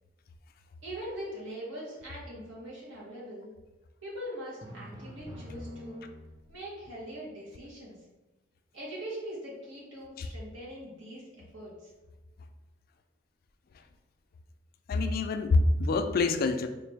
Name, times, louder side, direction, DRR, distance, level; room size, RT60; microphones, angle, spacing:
voice 1, 0.8-3.5 4.0-6.0 6.5-7.9 8.7-11.9, equal, 85° right, -6 dB, 1.5 m, -42 dB
Drum, 4.6-6.6, equal, 20° right, 0.6 m, -44 dB
voice 2, 14.9-16.7, left 3 dB, 50° left, 7 dB, 0.3 m, -26 dB
3.8 x 2.5 x 3.4 m, 1.1 s
head